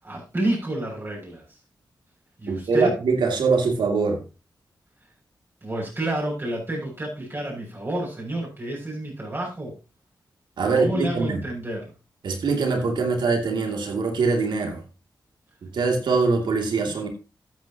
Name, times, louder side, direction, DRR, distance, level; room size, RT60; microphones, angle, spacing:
voice 1, 0.0-1.4 2.4-3.0 5.6-9.7 10.6-11.9 16.9-17.0, right 1 dB, 30° right, -2 dB, 6.7 m, -29 dB
voice 2, 2.5-4.2 10.6-11.4 12.2-14.8 15.6-17.1, right 4 dB, 90° right, 3 dB, 2.7 m, -23 dB
13.0 x 9.0 x 2.9 m, 0.29 s
cardioid pair, 80°, 8 cm